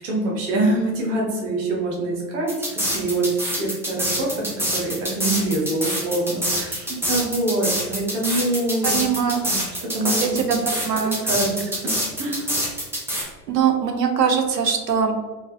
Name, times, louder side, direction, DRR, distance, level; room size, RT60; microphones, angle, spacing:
voice 1, 0.0-3.3 3.5-9.0 9.4-10.2 11.2-12.5, right 2 dB, 50° right, -2 dB, 1.0 m, -25 dB
sound 1, 2.5-13.2, equal, 5° right, 0.8 m, -25 dB
voice 2, 8.8-9.4 10.0-11.2 13.5-15.1, right 7 dB, 85° right, 5 dB, 0.6 m, -22 dB
3.8 x 2.4 x 2.6 m, 1.3 s
figure-of-eight pair, 85°, 49 cm